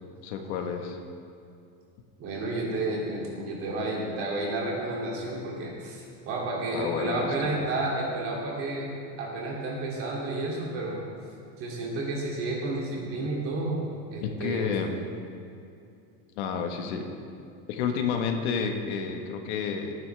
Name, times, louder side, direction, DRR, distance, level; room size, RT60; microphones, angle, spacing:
voice 1, 0.2-1.0 6.7-7.3 14.2-14.9 16.4-17.1 17.7-19.9, left 6 dB, 70° left, 4 dB, 1.4 m, -30 dB
voice 2, 2.2-8.9 9.2-11.0 11.6-13.8 14.1-14.8, right 2 dB, 40° right, -3 dB, 2.8 m, -31 dB
19.5 x 9.5 x 3.4 m, 2.6 s
cardioid pair, 180°, 35 cm